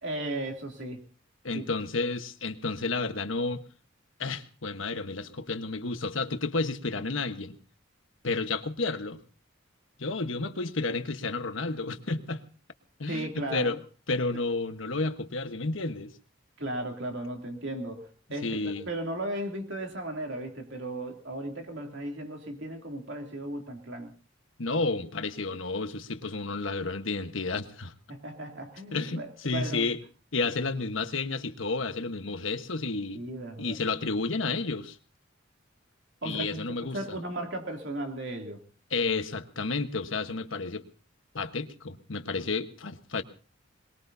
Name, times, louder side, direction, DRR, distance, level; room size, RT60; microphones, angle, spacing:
voice 1, 0.0-1.0 1.5-1.6 13.1-13.8 16.6-24.1 28.1-29.8 33.1-33.8 36.2-36.6 36.9-38.6, right 1 dB, 65° right, 3 dB, 2.9 m, -36 dB
voice 2, 1.4-3.6 4.2-7.6 8.2-9.2 10.0-12.4 13.0-13.8 14.1-16.1 18.4-18.8 24.6-27.9 28.9-30.0 30.3-33.2 33.6-35.0 36.2-37.2 38.9-40.8 41.3-43.2, left 3 dB, 80° left, 8 dB, 1.3 m, -31 dB
22.5 x 21.5 x 2.8 m, 0.38 s
head